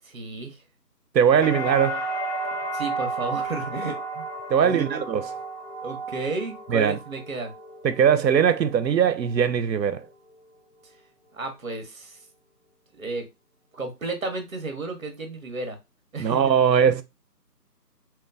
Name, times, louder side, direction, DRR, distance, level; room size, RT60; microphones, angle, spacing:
voice 1, 0.0-0.6 2.7-4.3 4.6-5.0 5.8-7.5 11.3-12.2 12.9-13.3 13.7-15.8 16.1-16.5 16.9-17.0, right 3 dB, 55° right, 0.8 m, -32 dB
voice 2, 1.1-2.0 4.5-5.2 6.7-7.0 7.8-10.1 16.2-17.0, right 7 dB, 90° right, 0.6 m, -20 dB
sound 1, 1.4-9.3 9.7-10.4, right 2 dB, 50° left, 1.6 m, -33 dB
2.9 x 2.2 x 2.4 m
figure-of-eight pair, 160°, 49 cm